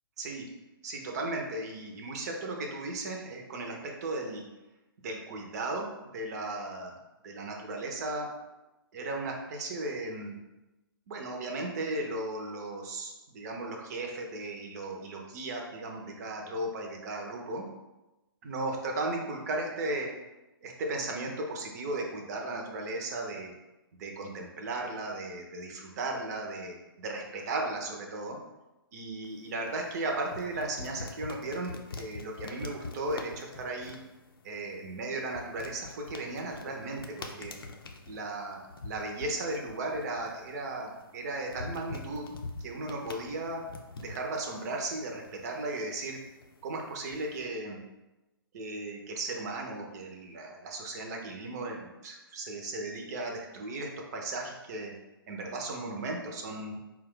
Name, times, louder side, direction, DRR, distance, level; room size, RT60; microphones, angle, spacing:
voice 1, 0.8-4.4 5.0-7.0 7.2-8.3 8.9-10.4 11.1-17.7 18.4-20.1 20.6-23.5 24.0-28.4 28.9-34.0 34.4-37.6 38.1-43.6 44.0-46.2 46.6-47.8 48.5-54.9 55.3-56.8, right 2 dB, 45° right, 1 dB, 0.7 m, -36 dB
sound 1, 29.2-47.4, left 3 dB, 70° left, 0.6 m, -46 dB
4.6 x 2.3 x 3.7 m, 1.0 s
figure-of-eight pair, 130°, 13 cm